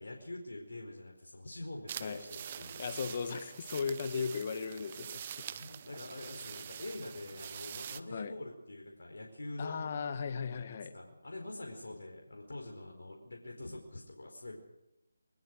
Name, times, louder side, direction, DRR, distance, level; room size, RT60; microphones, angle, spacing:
voice 1, 0.0-2.9 5.5-9.9 10.5-14.6, left 2 dB, 70° left, 1 dB, 4.6 m, -45 dB
sound 1, 1.9-8.0, right 9 dB, 30° right, 0.7 m, -45 dB
voice 2, 2.8-5.2 8.1-8.4 9.6-11.0, left 5 dB, 40° left, 10 dB, 1.7 m, -36 dB
23.0 x 20.0 x 6.4 m, 0.90 s
figure-of-eight pair, 160°, 0 cm